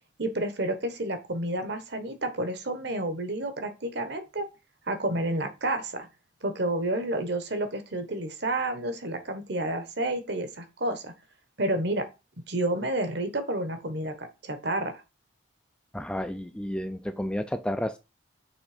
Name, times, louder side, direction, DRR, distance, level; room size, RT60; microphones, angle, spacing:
voice 1, 0.2-4.5 4.9-6.1 6.4-11.1 11.6-12.1 12.5-15.0, right 1 dB, 55° right, 8 dB, 1.1 m, -30 dB
voice 2, 15.9-18.0, left 1 dB, 5° left, 9 dB, 0.3 m, -31 dB
6.2 x 3.5 x 4.9 m, 0.27 s
head